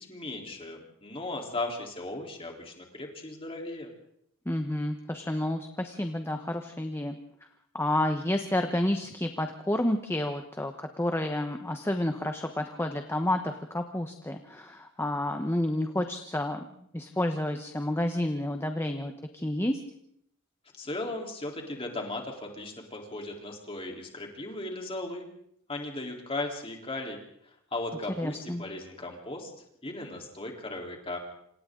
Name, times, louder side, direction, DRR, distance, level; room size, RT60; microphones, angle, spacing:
voice 1, 0.0-3.9 20.8-25.3 25.7-27.2 27.7-29.5 29.8-31.2, left 2 dB, 25° left, 1 dB, 3.8 m, -37 dB
voice 2, 4.5-7.2 7.7-16.6 16.9-19.8 28.2-28.6, left 1 dB, 10° left, 6 dB, 1.1 m, -30 dB
27.0 x 27.0 x 3.9 m, 0.69 s
head